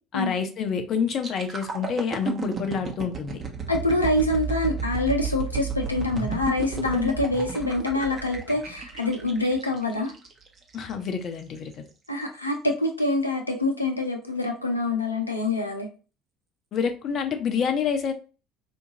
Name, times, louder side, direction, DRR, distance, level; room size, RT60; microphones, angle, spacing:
voice 1, 0.1-3.4 6.9-7.1 10.7-11.7 16.7-18.1, left 6 dB, 45° left, 6 dB, 0.6 m, -27 dB
sound 1, 1.1-10.9 11.4-11.6, right 5 dB, 40° right, 0.8 m, -33 dB
voice 2, 3.7-10.1 12.1-15.9, left 2 dB, 90° left, 3 dB, 0.6 m, -25 dB
4.4 x 2.4 x 2.7 m, 0.34 s
figure-of-eight pair, 60°, 0 cm